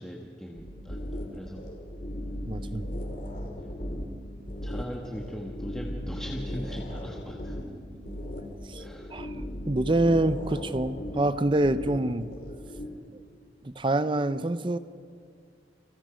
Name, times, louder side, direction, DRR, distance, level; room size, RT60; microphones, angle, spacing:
voice 1, 0.0-1.7 2.6-2.8 3.6-3.7 4.6-7.7 8.8-9.2, equal, 5° left, -1 dB, 1.6 m, -40 dB
sound 1, 0.5-12.9, equal, 45° left, 2.8 m, -37 dB
voice 2, 2.5-2.9 8.7-8.8 9.1-9.4 9.7-12.3 13.1-13.2 13.6-14.8, right 1 dB, 25° right, 13 dB, 0.6 m, -26 dB
30.0 x 25.5 x 5.1 m, 2.2 s
head